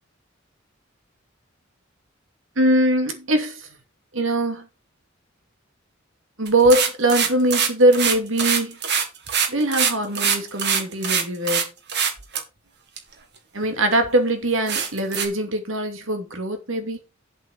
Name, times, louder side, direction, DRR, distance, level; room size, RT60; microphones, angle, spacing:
voice 1, 2.6-3.7 4.1-4.7 6.4-8.8 9.5-11.7 13.5-17.0, right 1 dB, 75° right, 2.7 m, -21 dB
sound 1, 6.5-11.6 11.9-12.4 13.0-13.1 13.6-13.7 14.0-14.1 14.7-15.3, right 7 dB, 60° right, 2.3 m, -22 dB
8.4 x 8.0 x 5.0 m
head